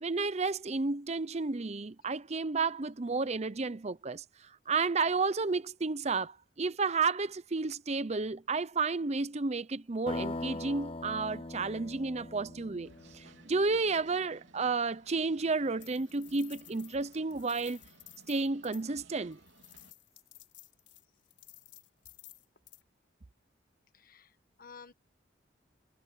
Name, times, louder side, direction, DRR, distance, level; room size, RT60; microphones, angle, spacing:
voice 1, 0.0-4.2 4.7-17.8 18.3-19.4, right 4 dB, 35° right, 0.7 m, -32 dB
sound 1, 10.1-13.9, left 2 dB, 30° left, 0.9 m, -41 dB
sound 2, 12.8-19.9, right 3 dB, 90° right, 3.4 m, -60 dB
sound 3, 15.4-18.9 19.3-22.8, left 16 dB, 70° left, 4.1 m, -55 dB
voice 2, 23.9-24.9, left 5 dB, 50° left, 1.6 m, -53 dB
head